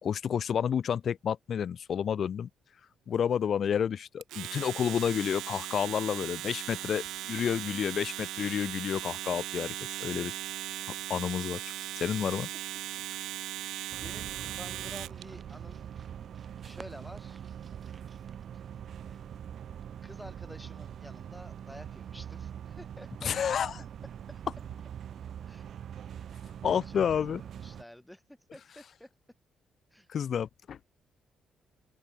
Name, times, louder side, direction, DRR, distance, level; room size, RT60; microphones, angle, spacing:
voice 1, 0.0-2.5 3.1-9.7 10.0-10.3 11.1-11.7 12.0-12.5 23.2-23.7 26.6-27.4 30.1-30.8, left 8 dB, 55° left, 1.6 m, -30 dB
Domestic sounds home sounds, 4.2-15.2, right 14 dB, 85° right, 1.9 m, -38 dB
sound 1, 6.5-18.4, right 5 dB, 40° right, 5.2 m, -59 dB
sound 2, 13.9-27.8, right 9 dB, 60° right, 4.4 m, -43 dB
voice 2, 14.0-15.9 16.6-17.4 18.5-18.6 19.0-19.2 20.0-23.6 24.3-24.4 25.5-25.6 26.7-27.0 27.4-29.1 29.9-30.1, equal, 5° left, 3.9 m, -50 dB
cardioid pair, 90°, 0 cm